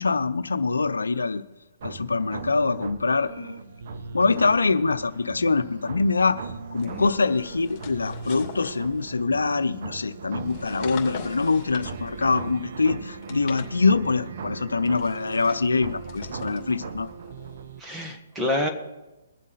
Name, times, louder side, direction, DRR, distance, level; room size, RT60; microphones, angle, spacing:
voice 1, 0.0-1.4 1.8-3.6 4.1-6.4 6.7-17.1, left 4 dB, 85° left, 12 dB, 0.6 m, -24 dB
sound 1, 1.8-17.8, right 5 dB, 55° right, 0.9 m, -38 dB
sound 2, 6.7-9.5 10.3-12.6 13.1-14.2 14.8-17.7, left 8 dB, 30° left, 2.6 m, -45 dB
voice 2, 17.8-18.7, left 1 dB, 10° right, 3 dB, 1.8 m, -28 dB
22.0 x 7.3 x 4.2 m, 1.1 s
hypercardioid pair, 140°, 0 cm